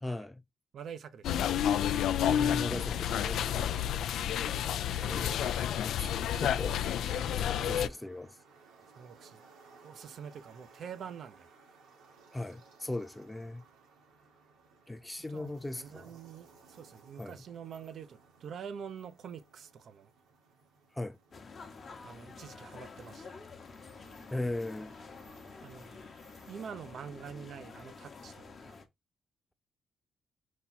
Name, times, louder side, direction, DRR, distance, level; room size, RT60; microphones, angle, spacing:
voice 1, 0.0-0.4 2.2-3.8 5.0-6.8 7.1-8.4 12.3-13.6 14.9-16.2 17.2-17.4 20.9-21.2 24.3-24.9, left 2 dB, 10° left, 0.4 m, -39 dB
voice 2, 0.7-1.6 8.9-9.4 9.8-11.5 15.3-20.1 22.0-23.5 25.6-26.1 26.5-28.8, right 7 dB, 60° right, 0.5 m, -46 dB
sound 1, 1.2-7.9, left 10 dB, 75° left, 0.3 m, -30 dB
sound 2, 7.4-26.7, right 4 dB, 90° right, 2.0 m, -61 dB
sound 3, 21.3-28.9, left 4 dB, 40° left, 0.9 m, -49 dB
4.2 x 2.3 x 4.2 m
cardioid pair, 90°, 0 cm